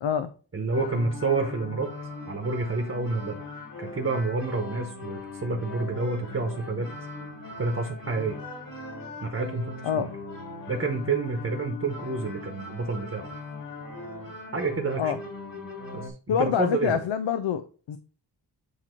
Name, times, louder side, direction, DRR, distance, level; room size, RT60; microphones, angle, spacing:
voice 1, 0.0-0.3 9.8-10.1 15.0-15.2 16.3-18.0, left 8 dB, 90° left, 0.6 m, -26 dB
voice 2, 0.5-1.9 2.3-3.4 3.8-6.9 7.6-8.4 9.2-10.1 10.7-13.3 14.5-15.2 15.9-17.0, right 3 dB, 30° right, 1.1 m, -29 dB
sound 1, 0.7-16.1, left 3 dB, 45° left, 2.4 m, -40 dB
8.3 x 2.9 x 4.4 m
wide cardioid pair, 135°, 44 cm